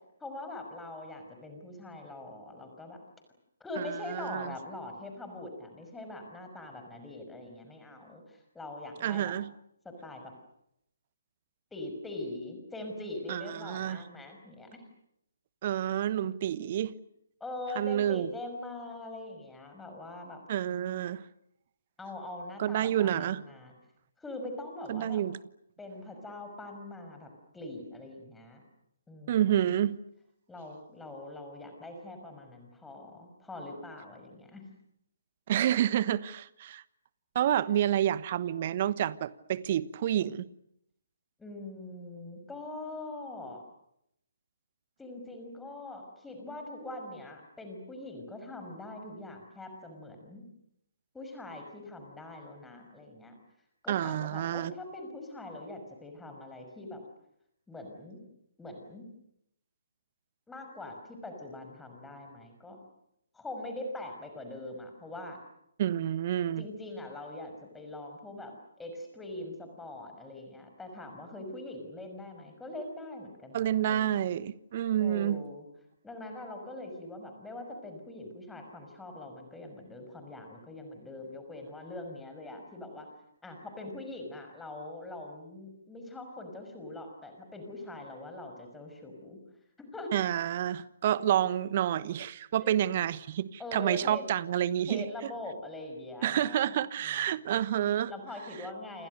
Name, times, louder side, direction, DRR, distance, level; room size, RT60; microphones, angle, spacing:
voice 1, 0.2-3.0 3.6-9.3 9.8-10.3 11.7-14.8 17.4-20.4 22.0-23.7 24.2-25.2 25.8-27.3 27.5-28.6 29.1-29.4 30.5-34.6 41.4-43.6 45.0-50.4 51.1-53.3 53.8-57.0 57.7-58.2 58.6-59.0 60.5-62.8 63.3-65.4 66.6-68.5 68.8-74.3 75.0-75.6 76.0-83.1 83.4-89.4 89.8-90.1 92.6-92.7 93.6-94.2 94.9-96.7 97.0-97.3 98.1-99.1, left 2 dB, 5° left, 5.6 m, -42 dB
voice 2, 3.8-4.5 9.0-9.5 13.3-14.0 15.6-17.0 17.8-18.3 20.5-21.2 22.6-23.4 24.9-25.4 29.3-30.0 35.5-36.8 37.3-40.5 53.9-54.7 65.8-66.7 73.5-75.4 90.1-95.3 96.2-98.1, right 11 dB, 35° right, 1.1 m, -29 dB
29.0 x 27.5 x 6.6 m
figure-of-eight pair, 135°, 0 cm